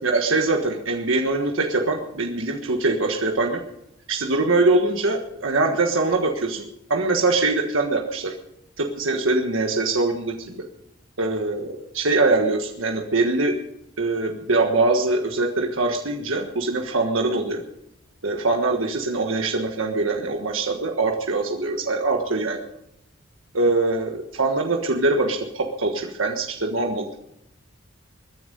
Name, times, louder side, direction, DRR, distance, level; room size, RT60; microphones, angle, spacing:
voice 1, 0.0-3.6 4.1-6.6 6.9-8.3 8.8-10.6 11.2-13.6 14.0-17.6 18.2-22.6 23.5-27.2, right 3 dB, 90° right, 2 dB, 1.5 m, -23 dB
22.0 x 10.0 x 5.4 m, 0.80 s
head